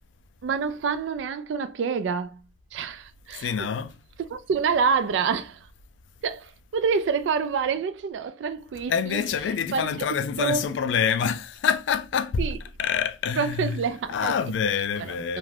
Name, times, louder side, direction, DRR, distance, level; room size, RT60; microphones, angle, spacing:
voice 1, 0.4-2.4 2.7-3.7 4.2-5.7 6.2-9.2 9.7-9.9 10.4-10.7 12.4-12.6 13.4-14.3 15.3-15.4, right 5 dB, 85° right, 0.3 m, -27 dB
voice 2, 3.3-4.0 8.9-12.4 12.8-13.8 14.1-15.4, left 7 dB, 85° left, 0.3 m, -26 dB
2.4 x 2.2 x 3.2 m
head